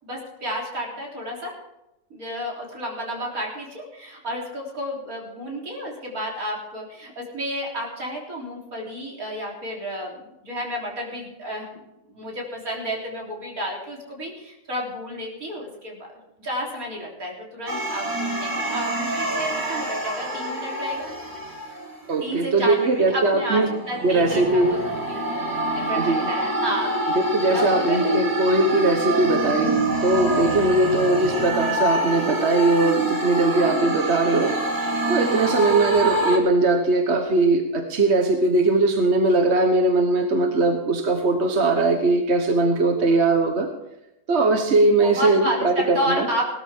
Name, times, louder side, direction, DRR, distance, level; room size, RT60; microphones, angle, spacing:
voice 1, 0.0-1.5 2.1-11.8 12.1-16.1 16.4-21.1 22.2-25.2 25.7-26.9 27.5-28.1 44.9-46.4, equal, 70° right, -2 dB, 4.1 m, -31 dB
sound 1, 17.7-22.1 22.6-36.4, right 1 dB, 15° right, 2.0 m, -26 dB
voice 2, 22.1-23.7 24.0-24.7 26.0-26.3 27.1-34.5 35.1-43.7 44.3-46.3, right 2 dB, 50° right, 4 dB, 1.4 m, -20 dB
18.5 x 13.0 x 3.6 m, 0.89 s
omnidirectional pair, 1.5 m